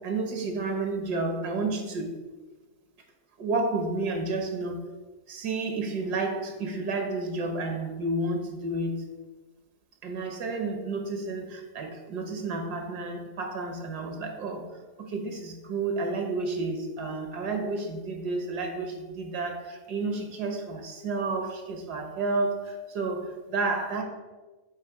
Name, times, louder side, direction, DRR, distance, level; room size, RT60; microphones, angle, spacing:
voice 1, 0.0-2.1 3.4-4.8 5.3-9.0 10.0-14.7 15.0-24.0, right 3 dB, 75° right, 4 dB, 1.5 m, -31 dB
8.7 x 3.4 x 4.5 m, 1.2 s
omnidirectional pair, 1.7 m